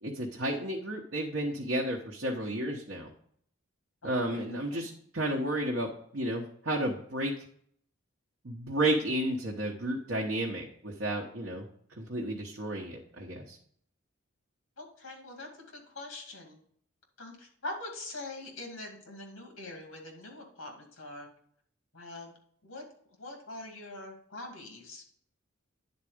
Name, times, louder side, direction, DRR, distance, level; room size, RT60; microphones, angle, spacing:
voice 1, 0.0-3.1 4.0-7.3 8.4-11.7 12.0-13.6, right 1 dB, 60° right, -2 dB, 1.0 m, -32 dB
voice 2, 4.0-4.9 14.8-16.6 17.2-21.3 21.9-22.3 22.6-25.0, left 2 dB, 65° left, 2 dB, 2.3 m, -44 dB
9.6 x 4.1 x 4.9 m, 0.63 s
head